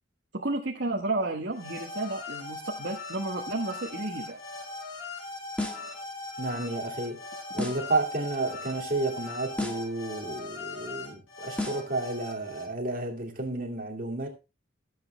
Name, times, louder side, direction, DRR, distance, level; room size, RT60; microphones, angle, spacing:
voice 1, 0.3-4.4, right 2 dB, 60° right, 1.4 m, -32 dB
sound 1, 1.5-12.6, left 3 dB, 85° left, 4.0 m, -40 dB
sound 2, 5.6-6.0 7.6-8.0 9.6-10.0 11.6-12.0, left 2 dB, 5° left, 1.4 m, -33 dB
voice 2, 6.4-7.2 7.5-14.3, right 2 dB, 45° right, 2.3 m, -31 dB
13.0 x 7.9 x 3.3 m
head